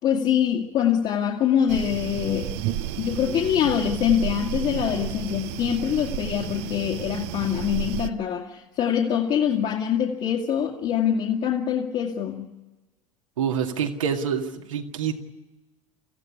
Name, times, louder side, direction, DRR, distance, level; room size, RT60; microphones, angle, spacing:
voice 1, 0.0-2.5 3.0-12.5, left 9 dB, 45° left, 0 dB, 2.2 m, -24 dB
sound 1, 1.7-8.1, right 13 dB, 55° right, 0.9 m, -32 dB
voice 2, 13.4-15.1, right 7 dB, 75° right, 3 dB, 2.2 m, -26 dB
25.5 x 15.5 x 9.7 m, 1.2 s
figure-of-eight pair, 80°, 17 cm